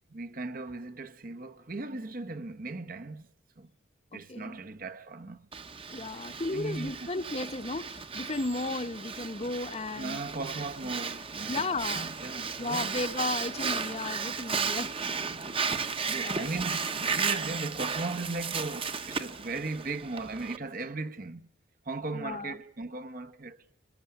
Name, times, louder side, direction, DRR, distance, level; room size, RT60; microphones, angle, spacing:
voice 1, 0.1-3.3 3.6-3.7 4.1-5.5 6.0-6.2 6.5-7.1 9.9-11.6 11.9-12.9 14.7-14.9 15.3-15.5 16.1-21.5 21.8-23.6, right 3 dB, 50° right, 1.1 m, -37 dB
voice 2, 4.1-4.6 5.9-10.2 11.5-12.1 12.6-14.9 16.1-16.5 22.1-22.6, left 2 dB, 35° left, 1.0 m, -34 dB
Breathing, 5.5-20.6, right 5 dB, 30° right, 1.0 m, -34 dB
24.5 x 20.0 x 10.0 m
head